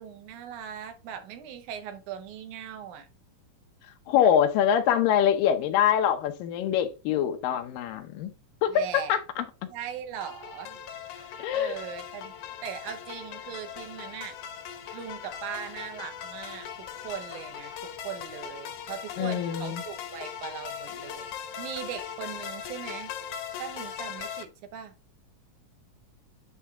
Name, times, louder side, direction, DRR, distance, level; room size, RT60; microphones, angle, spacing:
voice 1, 0.0-3.1 8.7-9.2 9.7-10.8 11.1-12.3 12.6-14.4 14.9-16.7 17.0-17.7 18.0-21.3 21.6-23.1 23.6-24.9, right 9 dB, 70° right, 2.3 m, -39 dB
voice 2, 4.1-8.3 8.6-9.7 11.4-11.8 19.2-19.8, left 9 dB, 90° left, 2.5 m, -24 dB
sound 1, 10.2-24.4, left 8 dB, 70° left, 2.1 m, -40 dB
9.6 x 3.3 x 3.6 m
omnidirectional pair, 3.8 m